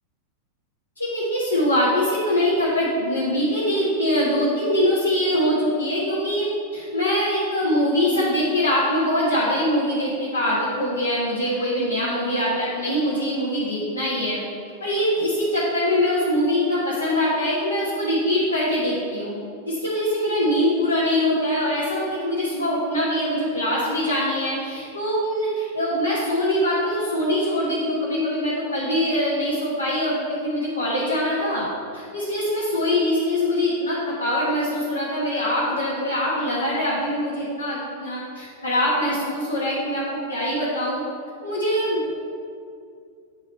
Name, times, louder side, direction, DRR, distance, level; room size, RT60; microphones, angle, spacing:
voice 1, 1.0-6.5 6.7-14.4 14.8-19.3 19.6-31.7 31.9-40.0 40.3-41.0 41.4-42.1, equal, 75° left, -8 dB, 1.3 m, -23 dB
8.7 x 4.0 x 4.3 m, 2.3 s
figure-of-eight pair, 90°, 0 cm